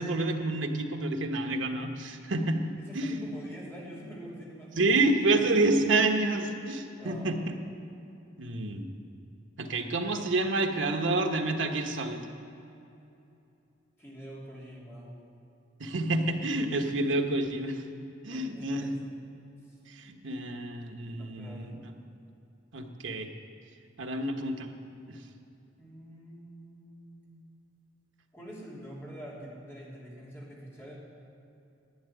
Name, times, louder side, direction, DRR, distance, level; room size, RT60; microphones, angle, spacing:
voice 1, 0.0-3.2 4.8-7.5 8.4-8.9 9.6-12.2 15.8-17.8 18.2-18.9 19.9-21.8 22.7-23.3 24.0-24.7 25.1-25.2, right 2 dB, 80° right, 4 dB, 1.2 m, -28 dB
voice 2, 2.8-5.5 6.9-7.4 14.0-15.2 18.3-19.0 19.6-19.8 21.2-21.8 25.8-27.4 28.3-31.0, equal, 15° left, -6 dB, 3.2 m, -46 dB
12.0 x 8.5 x 9.2 m, 2.7 s
head